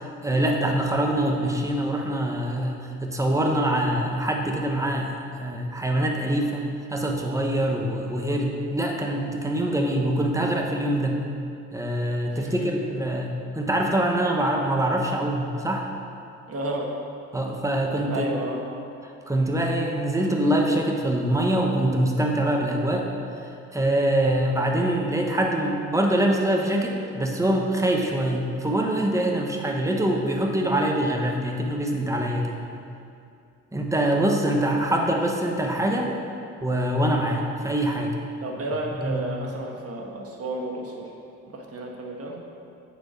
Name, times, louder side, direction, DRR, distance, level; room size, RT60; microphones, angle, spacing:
voice 1, 0.0-11.2 11.7-15.9 17.3-18.3 19.0-23.1 23.4-32.6 33.7-36.1 36.6-38.1 39.0-39.2, right 1 dB, 10° right, 1 dB, 1.1 m, -24 dB
voice 2, 12.3-12.7 16.5-16.9 18.1-18.6 38.4-41.1 41.5-42.4, right 2 dB, 50° right, 0 dB, 1.4 m, -32 dB
8.3 x 4.6 x 6.2 m, 2.5 s
cardioid pair, 90°, 30 cm